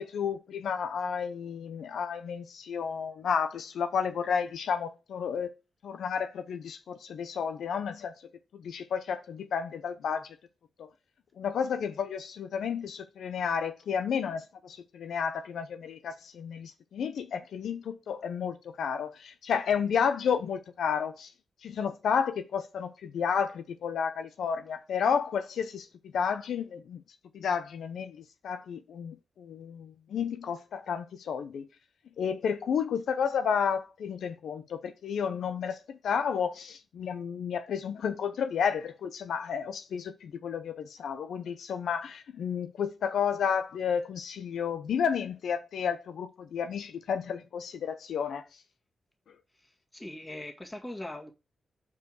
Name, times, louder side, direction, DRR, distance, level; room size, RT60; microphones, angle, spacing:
voice 1, 0.0-5.5 5.8-8.1 8.6-10.4 10.8-10.9 11.4-21.3 21.6-27.0 27.3-31.7 32.2-48.4, left 7 dB, 85° left, 0.6 m, -31 dB
voice 2, 49.5-51.3, left 1 dB, 15° left, 2.0 m, -41 dB
5.1 x 4.8 x 6.3 m
cardioid pair, 80°, 0 cm